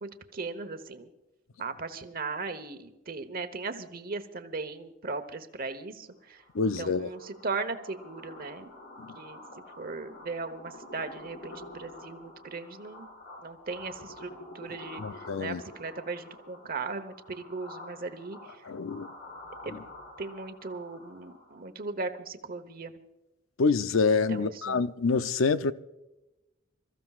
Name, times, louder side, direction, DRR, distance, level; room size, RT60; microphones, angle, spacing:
voice 1, 0.0-1.1 1.6-8.7 9.2-9.4 9.8-13.1 13.4-18.6 19.6-19.9 20.2-22.9 24.3-24.8, right 3 dB, 45° right, 1.1 m, -38 dB
sound 1, 6.3-21.6, left 1 dB, 60° left, 5.2 m, -48 dB
voice 2, 6.5-7.1 9.0-9.1 15.0-15.6 18.7-19.1 23.6-25.7, left 4 dB, 80° left, 0.6 m, -26 dB
27.0 x 14.5 x 2.4 m
head